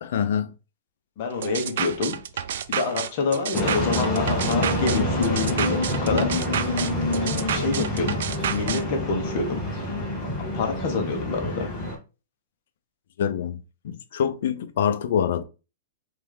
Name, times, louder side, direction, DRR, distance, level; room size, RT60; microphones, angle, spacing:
voice 1, 0.0-0.5 13.2-13.6 13.8-15.4, left 8 dB, 60° left, 0.6 m, -25 dB
voice 2, 1.2-2.2 2.7-6.3 7.5-8.2 8.5-9.7 10.5-11.7, left 4 dB, 40° left, 1.0 m, -27 dB
sound 1, 1.4-8.8, right 9 dB, 65° right, 0.4 m, -30 dB
sound 2, 3.5-12.0, left 1 dB, 10° left, 1.3 m, -27 dB
3.3 x 3.2 x 3.6 m
hypercardioid pair, 165°, 0 cm